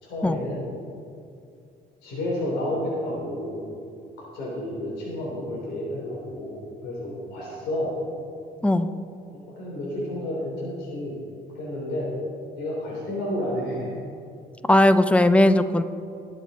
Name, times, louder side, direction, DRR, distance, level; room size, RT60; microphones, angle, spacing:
voice 1, 0.0-0.6 2.0-3.6 4.3-6.6 6.8-7.9 9.3-11.2 11.5-12.1 12.6-14.0, left 1 dB, 85° left, -4 dB, 3.5 m, -30 dB
voice 2, 14.7-15.8, left 1 dB, 5° left, 11 dB, 0.6 m, -18 dB
19.0 x 7.5 x 4.3 m, 2.5 s
cardioid pair, 110°, 17 cm